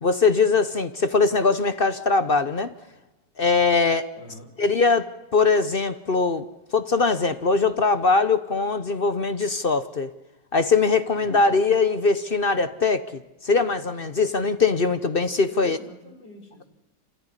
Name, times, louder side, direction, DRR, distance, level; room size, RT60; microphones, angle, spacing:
voice 1, 0.0-2.7 3.4-4.1 4.6-10.1 10.5-15.8, left 4 dB, 40° left, 12 dB, 0.8 m, -21 dB
voice 2, 4.2-4.5 11.1-11.5 15.5-16.6, left 1 dB, 75° left, 3 dB, 5.4 m, -46 dB
27.5 x 15.0 x 9.9 m, 1.1 s
omnidirectional pair, 1.9 m